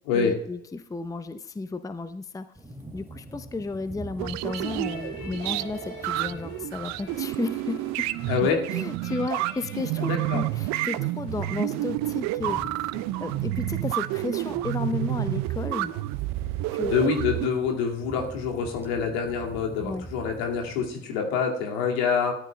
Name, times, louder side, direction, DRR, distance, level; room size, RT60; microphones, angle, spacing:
voice 1, 0.0-2.5 2.9-8.1 8.7-12.9 13.2-15.9 16.7-17.1 19.8-20.1, left 3 dB, 10° left, 11 dB, 0.7 m, -33 dB
sound 1, 2.5-20.9, right 1 dB, 5° right, 2.4 m, -46 dB
sound 2, 4.2-17.5, right 16 dB, 55° right, 0.6 m, -30 dB
sound 3, 4.4-12.9, left 6 dB, 45° left, 3.8 m, -47 dB
voice 2, 8.3-8.6 10.0-10.4 16.8-22.3, left 6 dB, 70° left, 1 dB, 2.3 m, -26 dB
18.0 x 13.0 x 2.3 m, 0.75 s
figure-of-eight pair, 55°, 32 cm